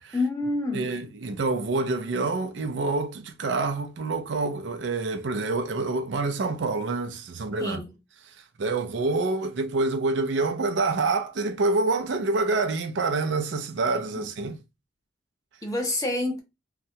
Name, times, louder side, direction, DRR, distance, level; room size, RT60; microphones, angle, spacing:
voice 1, 0.1-0.9 7.6-7.9 14.2-14.3 15.6-16.4, left 2 dB, 20° left, 0.7 m, -28 dB
voice 2, 0.7-7.8 8.6-14.6, right 3 dB, 75° right, 0.5 m, -27 dB
2.9 x 2.2 x 2.7 m
head